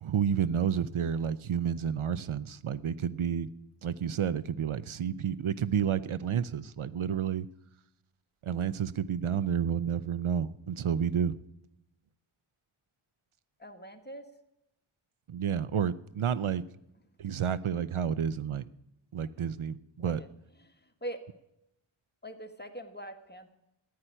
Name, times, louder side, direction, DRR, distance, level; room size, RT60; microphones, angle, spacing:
voice 1, 0.0-3.5 3.8-7.5 8.4-11.4 15.3-16.6 17.2-18.6 19.1-20.2, right 8 dB, 75° right, 16 dB, 0.7 m, -30 dB
voice 2, 13.6-14.2 20.0-20.3 20.6-21.2 22.2-23.5, right 1 dB, 20° left, 5 dB, 1.7 m, -43 dB
14.5 x 9.6 x 10.0 m, 0.85 s
wide cardioid pair, 75°, 50 cm